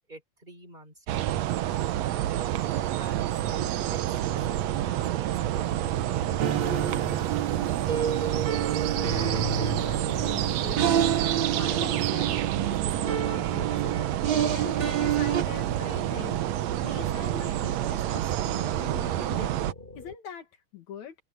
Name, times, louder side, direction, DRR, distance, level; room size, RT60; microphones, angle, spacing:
voice 1, 0.0-1.4 2.0-3.6 3.9-5.6, right 1 dB, 15° right, 3.2 m, -50 dB
sound 1, 1.1-19.7, right 13 dB, 70° right, 1.9 m, -28 dB
sound 2, 3.3-7.5 8.6-13.2 13.8-17.9 18.5-20.2, left 2 dB, 15° left, 4.3 m, -46 dB
sound 3, 6.4-15.4, right 8 dB, 50° right, 1.8 m, -29 dB
voice 2, 8.9-19.6 20.0-21.1, left 8 dB, 70° left, 3.0 m, -43 dB
omnidirectional pair, 3.4 m